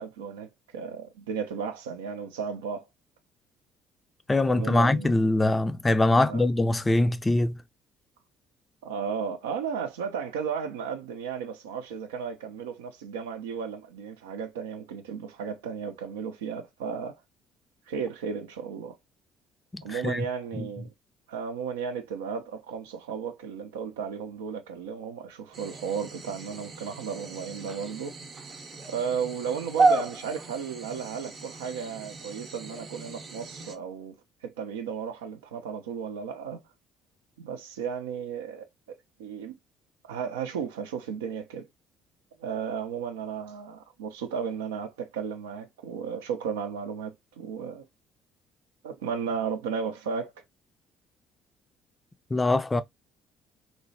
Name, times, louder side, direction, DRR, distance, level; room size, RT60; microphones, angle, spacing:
voice 1, 0.0-2.9 4.5-5.3 6.1-6.4 8.8-17.2 17.9-19.0 19.8-20.9 21.3-28.2 28.9-34.1 34.4-36.6 37.4-38.7 39.2-39.5 40.0-41.7 42.4-47.8 48.8-50.3, right 6 dB, 80° right, 0.5 m, -34 dB
voice 2, 4.3-7.6 19.7-20.2 20.5-20.7 52.3-52.8, left 2 dB, 20° left, 0.4 m, -23 dB
sound 1, 25.5-33.7, right 3 dB, 45° right, 0.7 m, -32 dB
3.0 x 2.1 x 2.6 m
hypercardioid pair, 55°, 0 cm